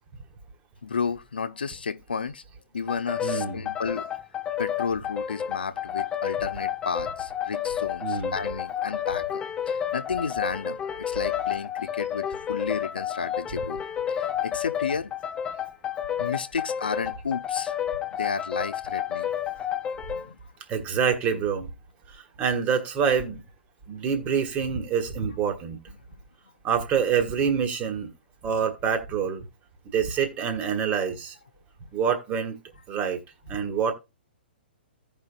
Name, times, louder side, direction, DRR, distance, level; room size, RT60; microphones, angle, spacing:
voice 1, 0.8-2.4 2.7-4.1 4.6-15.1 16.2-17.8 18.2-19.3 20.1-20.4, left 5 dB, 65° left, 0.7 m, -32 dB
sound 1, 2.9-20.3, left 9 dB, 15° left, 0.4 m, -30 dB
voice 2, 3.2-3.6 8.0-8.4 13.5-13.6 20.7-21.7 22.1-23.4 23.9-25.8 26.6-28.1 28.4-29.4 29.8-31.3 31.9-32.6 32.9-33.2 33.5-33.9, right 7 dB, 25° right, 1.5 m, -26 dB
15.5 x 5.4 x 2.4 m
figure-of-eight pair, 120°, 6 cm